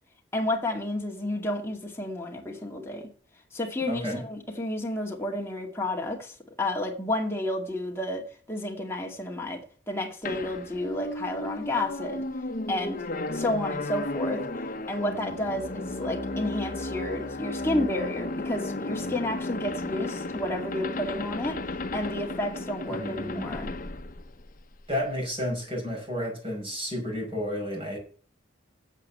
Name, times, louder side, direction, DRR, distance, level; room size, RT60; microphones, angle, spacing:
voice 1, 0.3-3.1 3.5-12.2 12.7-13.0 13.3-14.4 14.9-21.6 21.9-23.7, left 1 dB, 15° left, 2.2 m, -31 dB
voice 2, 3.9-4.2 22.8-23.5 24.9-28.0, equal, 30° right, 5.8 m, -32 dB
sound 1, 10.3-25.0, left 2 dB, 45° left, 0.9 m, -34 dB
8.6 x 7.5 x 8.5 m
head